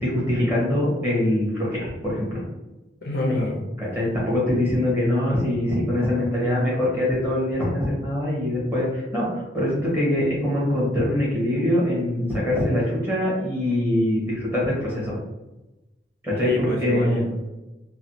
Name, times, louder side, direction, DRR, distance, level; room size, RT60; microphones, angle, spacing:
voice 1, 0.0-2.4 3.8-15.2 16.2-17.2, left 1 dB, 15° right, -6 dB, 1.2 m, -23 dB
voice 2, 3.0-3.7 16.4-17.5, left 2 dB, 60° left, 0 dB, 0.6 m, -26 dB
3.2 x 2.3 x 2.7 m, 1.0 s
head